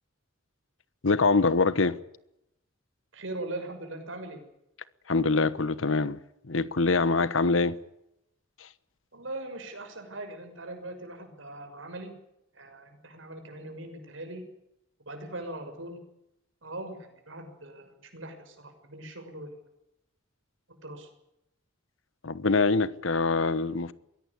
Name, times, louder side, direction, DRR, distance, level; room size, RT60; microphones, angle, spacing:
voice 1, 1.0-2.0 5.1-6.2 6.5-7.8 22.2-23.9, left 3 dB, 80° left, 1.2 m, -24 dB
voice 2, 3.1-4.4 9.1-12.1 12.5-14.4 15.1-16.0 16.6-19.5 20.7-21.1, right 2 dB, 75° right, 6.5 m, -40 dB
22.0 x 17.5 x 10.0 m
head